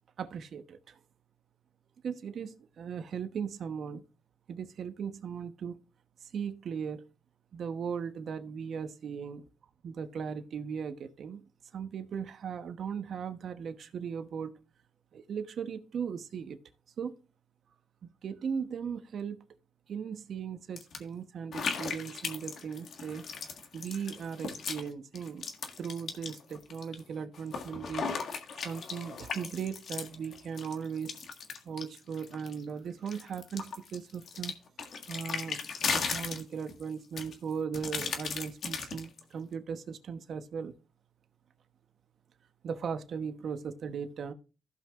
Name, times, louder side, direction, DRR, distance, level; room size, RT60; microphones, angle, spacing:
voice 1, 0.2-1.0 2.0-4.0 4.5-5.8 6.2-7.1 7.5-9.4 9.8-11.4 11.7-14.6 15.1-16.6 17.0-17.1 18.0-19.4 19.9-23.3 23.7-25.5 25.8-28.1 28.6-31.2 31.6-34.5 35.1-35.6 35.9-40.7 42.6-44.3, right 7 dB, 60° right, 1.0 m, -38 dB
sound 1, 20.8-21.0 21.5-24.9 25.1-27.0 27.3-32.6 33.1-36.8 37.2-39.2, left 5 dB, 60° left, 1.6 m, -37 dB
15.5 x 5.7 x 2.5 m
cardioid pair, 90°, 0 cm